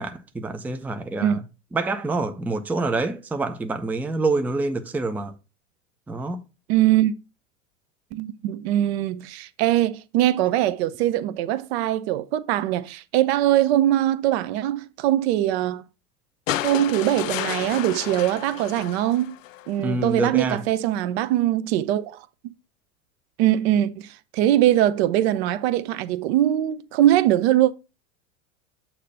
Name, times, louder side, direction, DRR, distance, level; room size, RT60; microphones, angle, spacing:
voice 1, 0.0-1.4 1.7-5.3 6.1-6.4 19.8-20.6, right 3 dB, 5° right, 0.5 m, -26 dB
voice 2, 6.7-7.1 8.1-15.8 16.6-19.3 19.7-22.3 23.4-27.7, right 13 dB, 50° right, 0.6 m, -22 dB
sound 1, 16.5-19.8 21.1-21.2, left 13 dB, 70° left, 0.5 m, -31 dB
8.2 x 2.9 x 5.4 m
hypercardioid pair, 90°, 40 cm